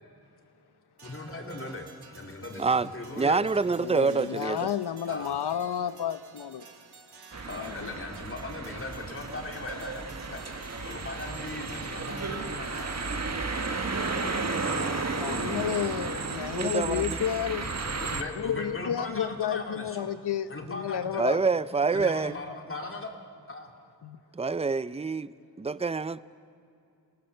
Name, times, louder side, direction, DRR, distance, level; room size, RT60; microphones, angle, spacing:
voice 1, 1.0-3.5 5.1-5.4 7.5-13.1 14.3-15.2 18.0-20.1 20.5-21.2 21.9-23.1 23.5-23.7 25.4-25.5, left 2 dB, 30° left, 2.5 m, -39 dB
sound 1, 1.0-13.5, right 4 dB, 75° right, 2.2 m, -53 dB
voice 2, 2.6-2.9 3.2-4.7 16.6-17.2 21.2-22.3 24.3-26.2, right 4 dB, 15° right, 0.4 m, -27 dB
voice 3, 3.7-6.7 7.6-8.0 14.8-17.7 18.4-21.4 24.0-24.2, left 9 dB, 75° left, 0.9 m, -31 dB
sound 2, 7.3-18.2, right 4 dB, 40° right, 1.6 m, -33 dB
28.0 x 18.0 x 6.6 m
wide cardioid pair, 115°, 40 cm